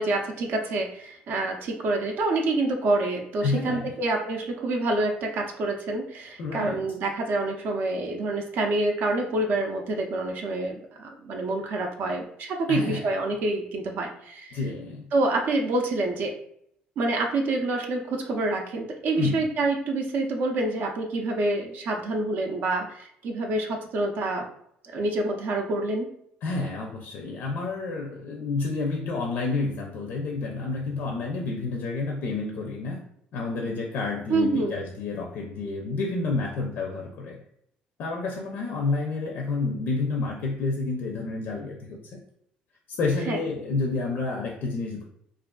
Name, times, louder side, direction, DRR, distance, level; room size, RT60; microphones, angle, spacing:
voice 1, 0.0-14.6 15.1-16.3 17.0-24.5 24.8-26.1 34.3-34.7 43.3-43.4, right 2 dB, 60° right, 2 dB, 0.5 m, -27 dB
voice 2, 3.4-3.9 6.4-6.8 12.7-13.1 14.5-15.0 19.2-19.4 26.4-33.0 33.3-37.4 38.0-42.2 43.0-45.0, left 3 dB, 65° left, 0 dB, 0.4 m, -29 dB
2.4 x 2.4 x 2.2 m, 0.71 s
supercardioid pair, 80°, 4 cm